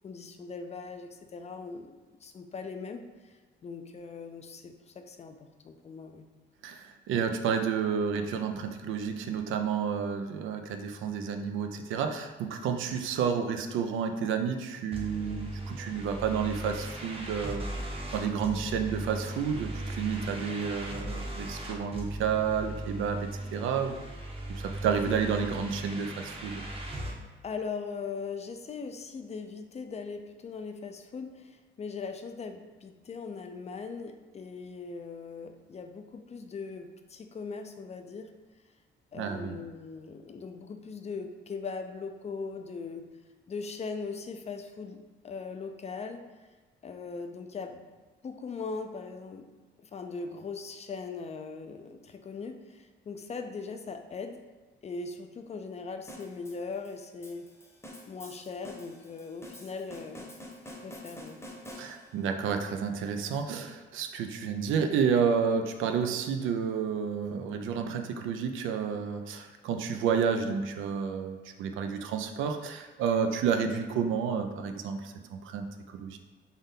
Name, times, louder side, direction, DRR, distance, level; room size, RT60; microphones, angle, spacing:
voice 1, 0.0-3.3 3.6-5.4 5.6-6.3 27.4-38.3 39.1-43.0 43.5-46.2 46.8-47.8 48.2-49.5 49.8-54.4 54.8-57.5 58.1-60.3 60.8-61.4, left 4 dB, 35° left, 6 dB, 0.4 m, -40 dB
voice 2, 6.6-17.7 18.1-24.0 24.5-26.6 39.1-39.6 61.8-76.2, right 6 dB, 80° right, 6 dB, 0.4 m, -30 dB
sound 1, 14.9-27.1, right 1 dB, 30° right, 0.8 m, -38 dB
sound 2, 56.1-62.3, left 1 dB, 15° left, 0.8 m, -47 dB
3.5 x 2.7 x 3.7 m, 1.3 s
cardioid pair, 90°, 20 cm